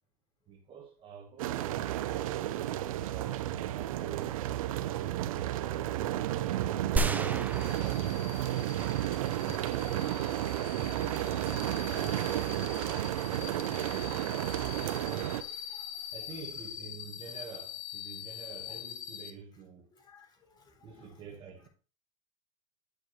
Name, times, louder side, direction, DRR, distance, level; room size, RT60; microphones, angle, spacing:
voice 1, 0.5-2.4 3.1-4.3 9.7-12.5 13.2-14.1 16.1-19.9 20.8-21.7, right 6 dB, 30° right, 1.6 m, -48 dB
sound 1, 1.4-15.4, right 13 dB, 75° right, 0.7 m, -32 dB
sound 2, 7.0-8.9 9.2-9.3, right 2 dB, 10° right, 0.7 m, -33 dB
sound 3, 7.5-19.3, left 10 dB, 70° left, 1.3 m, -44 dB
voice 2, 13.0-16.4 18.7-18.8 19.9-21.7, left 2 dB, 25° left, 3.6 m, -57 dB
9.9 x 6.4 x 3.2 m
supercardioid pair, 130°, 18 cm